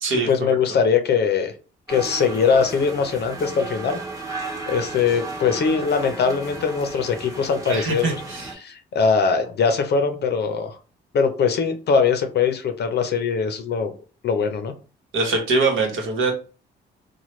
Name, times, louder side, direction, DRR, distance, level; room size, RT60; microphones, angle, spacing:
voice 1, 0.3-1.5 1.9-4.0 4.7-8.2 8.6-10.8 11.1-13.9 14.2-14.7, left 5 dB, 55° left, 7 dB, 0.5 m, -21 dB
sound 1, 1.9-8.5, right 3 dB, 15° right, 1.0 m, -34 dB
voice 2, 7.7-8.5 15.1-16.3, right 3 dB, 80° right, 2 dB, 1.0 m, -22 dB
3.1 x 2.2 x 3.0 m, 0.37 s
cardioid pair, 90°, 20 cm